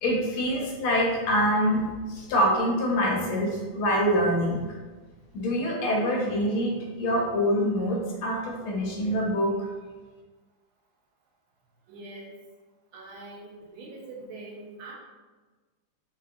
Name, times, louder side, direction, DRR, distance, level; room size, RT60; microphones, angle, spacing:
voice 1, 0.0-4.6 5.3-9.7, equal, 75° left, -2 dB, 1.6 m, -25 dB
voice 2, 11.9-12.3 12.9-14.9, right 2 dB, 75° right, -3 dB, 1.5 m, -43 dB
4.1 x 2.8 x 2.5 m, 1.3 s
omnidirectional pair, 2.4 m